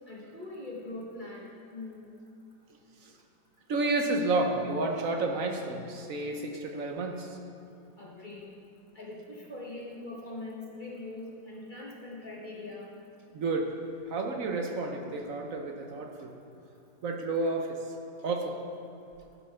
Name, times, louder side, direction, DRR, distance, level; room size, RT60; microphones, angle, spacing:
voice 1, 0.1-2.1 8.0-8.5 8.9-13.0 15.1-15.2, left 2 dB, 30° left, -3 dB, 1.1 m, -42 dB
voice 2, 3.7-7.3 13.3-13.7 14.1-16.3 17.0-17.8 18.2-18.6, right 2 dB, 55° right, 3 dB, 1.1 m, -30 dB
12.0 x 5.4 x 5.6 m, 2.8 s
omnidirectional pair, 1.9 m